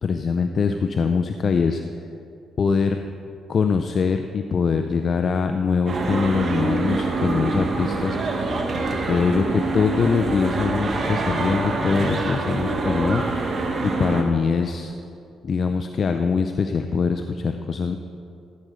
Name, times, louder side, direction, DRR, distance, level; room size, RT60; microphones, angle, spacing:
voice 1, 0.0-1.8 2.6-3.0 3.5-8.2 9.0-14.9 15.4-18.0, left 5 dB, 50° left, 6 dB, 0.5 m, -23 dB
sound 1, 5.9-14.2, right 3 dB, 45° right, 1.7 m, -25 dB
15.0 x 8.0 x 5.0 m, 2.6 s
cardioid pair, 90°, 0 cm